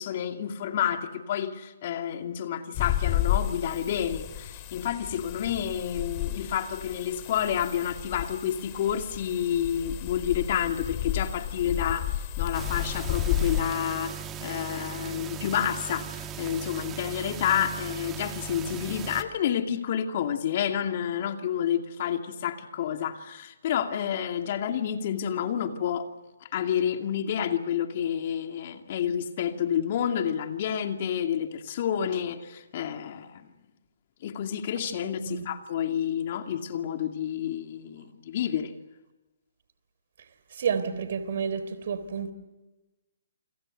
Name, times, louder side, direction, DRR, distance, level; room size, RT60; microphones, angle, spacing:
voice 1, 0.0-26.1 26.4-33.5 34.2-38.7, left 9 dB, 45° left, 2.4 m, -29 dB
sound 1, 2.7-13.6, left 12 dB, 30° left, 3.1 m, -32 dB
sound 2, 12.5-19.2, right 7 dB, 20° right, 2.0 m, -38 dB
voice 2, 40.6-42.3, right 6 dB, 55° right, 3.6 m, -30 dB
29.0 x 26.0 x 6.7 m
hypercardioid pair, 145°, 0 cm